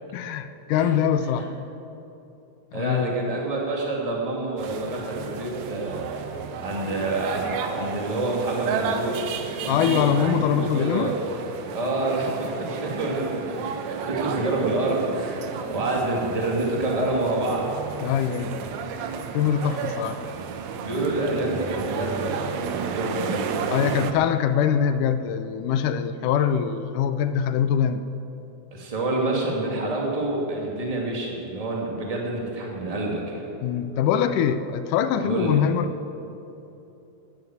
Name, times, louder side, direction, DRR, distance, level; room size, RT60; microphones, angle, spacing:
voice 1, 0.1-1.5 2.7-3.2 9.7-11.1 18.0-18.6 19.3-20.2 23.7-28.0 33.6-35.9, left 8 dB, 90° left, 11 dB, 2.3 m, -23 dB
voice 2, 2.7-6.0 6.6-9.3 9.6-11.1 11.7-17.7 18.0-18.2 20.8-23.5 28.7-33.5 35.2-35.6, right 2 dB, 15° right, -2 dB, 1.9 m, -27 dB
sound 1, 4.6-24.1, right 6 dB, 70° right, 2.1 m, -32 dB
13.5 x 11.0 x 7.9 m, 2.9 s
omnidirectional pair, 3.6 m